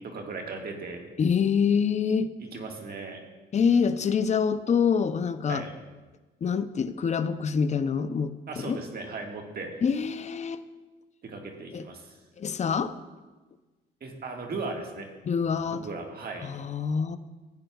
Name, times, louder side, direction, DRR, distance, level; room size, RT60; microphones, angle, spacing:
voice 1, 0.0-1.0 2.4-3.2 5.5-5.7 8.5-9.8 11.2-12.2 14.0-15.1 15.7-16.5, right 3 dB, 50° right, 2 dB, 1.6 m, -37 dB
voice 2, 1.2-2.3 3.5-5.6 6.4-8.8 9.8-10.6 11.7-11.8 12.4-12.9 15.2-15.8 16.4-17.2, left 6 dB, 35° left, 11 dB, 0.6 m, -26 dB
15.5 x 9.0 x 2.3 m, 1.3 s
cardioid pair, 90°, 20 cm